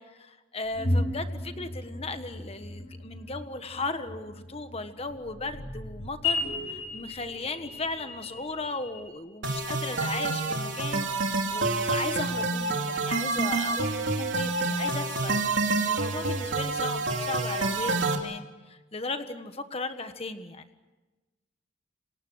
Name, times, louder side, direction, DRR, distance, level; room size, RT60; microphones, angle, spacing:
voice 1, 0.0-20.7, left 3 dB, 30° left, 9 dB, 1.5 m, -36 dB
sound 1, 0.6-9.1, left 2 dB, 75° left, 7.7 m, -35 dB
sound 2, 9.4-18.2, right 3 dB, 60° right, 3.4 m, -28 dB
28.5 x 26.0 x 6.4 m, 1.2 s
head